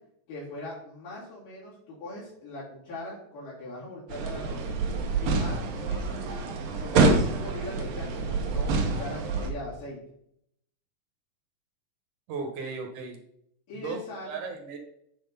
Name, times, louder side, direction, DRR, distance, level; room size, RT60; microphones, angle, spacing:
voice 1, 0.3-4.7 5.2-6.2 6.8-10.0 13.7-14.4, left 1 dB, 75° left, -9 dB, 5.1 m, -40 dB
sound 1, 4.1-9.5, right 3 dB, 85° right, 2.9 m, -27 dB
voice 2, 12.3-13.2 13.7-14.0 14.3-14.8, right 4 dB, 65° right, 3 dB, 2.6 m, -36 dB
9.7 x 4.7 x 5.5 m, 0.72 s
omnidirectional pair, 3.9 m